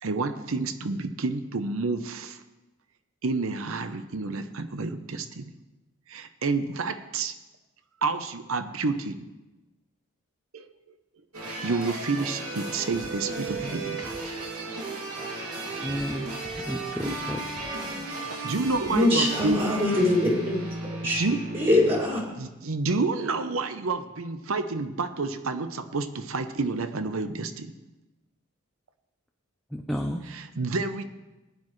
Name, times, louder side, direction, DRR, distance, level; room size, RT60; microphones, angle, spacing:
voice 1, 0.0-2.4 3.2-5.5 6.1-7.4 8.0-9.3 10.5-10.7 11.6-14.1 18.4-19.6 21.2-21.4 22.3-27.7 30.3-31.0, right 3 dB, 70° right, 9 dB, 0.7 m, -29 dB
sound 1, 11.3-22.0, right 2 dB, 90° right, 2.7 m, -35 dB
voice 2, 15.8-16.3 16.6-17.4 18.3-18.5 29.7-30.2, equal, ahead, 1 dB, 0.5 m, -32 dB
voice 3, 18.9-20.6 21.0-21.2 21.5-22.2, left 1 dB, 25° right, -5 dB, 2.3 m, -23 dB
19.0 x 9.8 x 3.2 m, 1.1 s
head